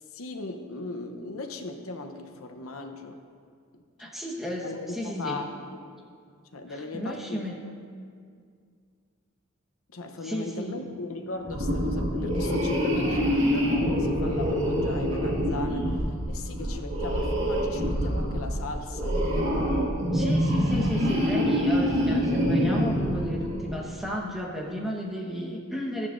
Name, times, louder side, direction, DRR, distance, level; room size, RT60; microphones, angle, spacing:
voice 1, 0.1-3.2 4.6-5.8 6.5-7.7 9.9-16.0 16.3-19.2, left 3 dB, 85° left, 5 dB, 0.8 m, -38 dB
voice 2, 4.0-5.4 6.7-7.6 10.2-10.9 20.1-26.1, equal, ahead, -3 dB, 1.2 m, -33 dB
sound 1, 11.4-23.9, equal, 70° right, 1.9 m, -26 dB
13.5 x 10.5 x 2.6 m, 2.2 s
head